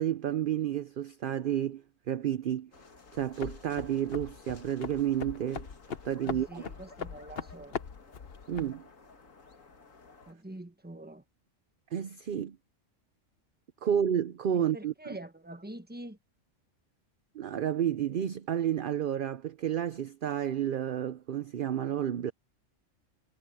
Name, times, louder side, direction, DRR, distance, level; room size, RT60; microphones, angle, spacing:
voice 1, 0.0-2.7 3.1-5.7 6.0-6.6 8.5-8.8 11.9-12.6 13.8-14.9 17.3-22.3, right 10 dB, 55° right, 0.7 m, -31 dB
sound 1, 2.7-10.3, left 4 dB, 80° left, 2.4 m, -55 dB
sound 2, 3.1-8.8, left 7 dB, 50° left, 1.1 m, -41 dB
voice 2, 6.2-7.8 10.3-11.2 14.6-16.2, right 1 dB, 10° right, 1.3 m, -45 dB
omnidirectional pair, 1.3 m